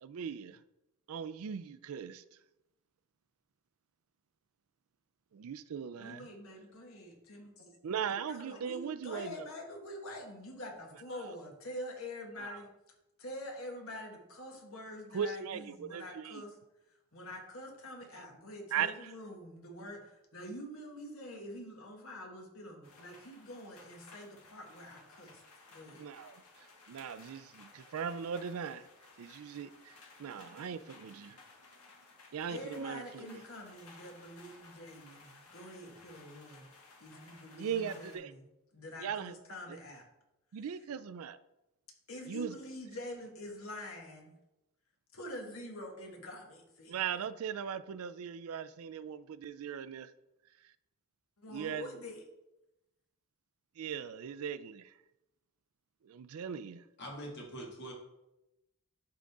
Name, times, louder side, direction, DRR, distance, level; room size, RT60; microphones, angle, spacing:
voice 1, 0.0-0.6 1.1-2.2 5.3-6.3 7.8-9.5 12.4-12.6 15.1-16.4 18.7-19.1 26.0-26.4 26.9-28.9 29.2-31.4 32.3-33.4 37.6-38.3 39.0-39.4 39.7-39.8 40.5-41.4 42.3-42.6 46.9-50.1 51.5-51.9 53.8-54.9 56.0-56.8, right 7 dB, 75° right, 15 dB, 0.4 m, -39 dB
voice 2, 6.0-7.7 8.3-12.7 13.2-16.6 16.9-25.4 25.7-26.0 32.5-36.7 37.0-40.0 42.1-44.3 45.1-46.9 51.4-52.2, left 1 dB, 70° left, 1 dB, 1.6 m, -46 dB
sound 1, 22.8-38.2, left 3 dB, 85° left, 1.6 m, -58 dB
voice 3, 57.0-57.9, right 1 dB, 50° left, -1 dB, 1.9 m, -43 dB
11.5 x 3.8 x 3.5 m, 0.93 s
head